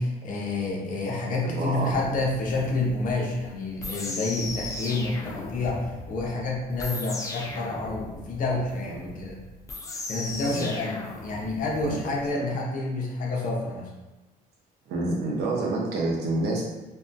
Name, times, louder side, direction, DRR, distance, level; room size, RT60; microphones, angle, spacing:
voice 1, 0.0-9.4 10.1-13.9, left 2 dB, 50° left, -3 dB, 0.7 m, -29 dB
voice 2, 1.4-1.9 4.2-4.4 8.9-9.1 10.5-10.7 11.8-12.1 14.9-16.6, right 2 dB, 75° right, -2 dB, 0.7 m, -28 dB
sound 1, 1.8-12.2, left 2 dB, 20° left, 0.4 m, -37 dB
2.7 x 2.2 x 2.5 m, 1.1 s
cardioid pair, 110°, 17 cm